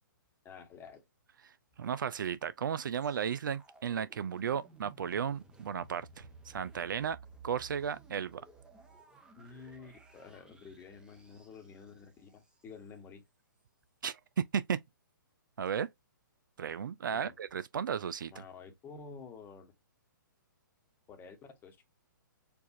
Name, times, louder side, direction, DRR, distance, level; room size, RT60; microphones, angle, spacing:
voice 1, 0.4-1.0 9.4-13.2 17.1-17.3 18.3-19.7 21.1-21.8, left 5 dB, 20° left, 1.1 m, -50 dB
voice 2, 1.8-7.2 7.4-8.4 14.0-14.8 15.6-15.9 16.6-18.3, right 7 dB, 70° right, 0.4 m, -34 dB
sound 1, 2.9-13.0 13.6-13.7, right 3 dB, 5° right, 0.8 m, -57 dB
4.5 x 2.5 x 2.5 m
figure-of-eight pair, 125°, 11 cm